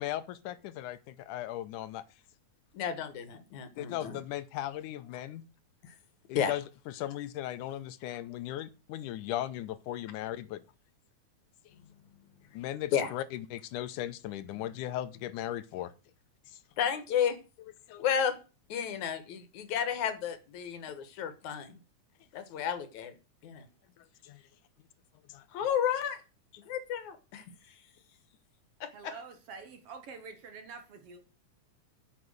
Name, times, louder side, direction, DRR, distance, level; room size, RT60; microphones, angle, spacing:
voice 1, 0.0-2.0 3.8-5.4 6.3-6.6 6.9-10.6 12.5-15.9 16.5-16.6 17.9-18.0 24.0-24.4 25.3-25.5, left 13 dB, 90° left, 2.3 m, -37 dB
voice 2, 2.7-4.2 5.8-6.0 6.3-6.6 12.9-13.1 16.8-17.4 18.0-18.4 18.7-21.8 22.3-23.2 23.4-23.7 25.5-26.2 26.7-27.2 28.8-29.1, left 8 dB, 70° left, 2.6 m, -32 dB
voice 3, 28.9-31.2, right 5 dB, 55° right, 2.0 m, -46 dB
9.6 x 6.8 x 6.5 m
omnidirectional pair, 3.5 m